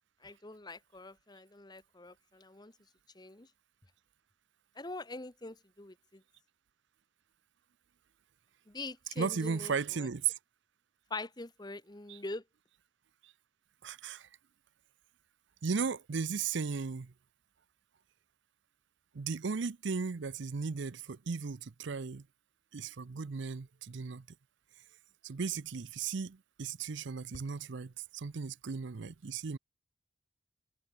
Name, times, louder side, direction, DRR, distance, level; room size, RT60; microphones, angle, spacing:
voice 1, 0.2-2.7 3.1-3.5 4.8-6.2 8.7-10.1 11.1-12.4, left 2 dB, 20° left, 1.1 m, -44 dB
voice 2, 9.1-10.4 12.1-12.2 13.2-13.3 13.8-14.3 15.6-17.1 19.1-22.2 22.7-24.3 25.2-29.6, right 5 dB, 65° right, 0.6 m, -36 dB
head